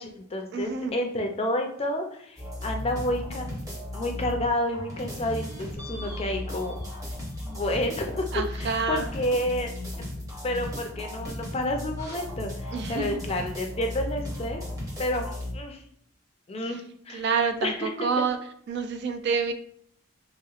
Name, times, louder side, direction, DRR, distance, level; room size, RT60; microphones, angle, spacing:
voice 1, 0.0-3.6 3.9-6.8 7.4-9.7 10.0-10.1 10.4-14.6 15.0-15.8 16.5-16.8 17.1-17.3 17.6-17.9, left 1 dB, 30° left, 3 dB, 0.4 m, -30 dB
voice 2, 0.5-0.9 8.3-9.1 12.7-13.1 17.1-18.4 18.7-19.5, right 5 dB, 55° right, 8 dB, 0.3 m, -28 dB
sound 1, 2.4-4.5 4.7-15.5, left 1 dB, 15° right, 0.7 m, -35 dB
3.2 x 2.9 x 2.4 m, 0.67 s
head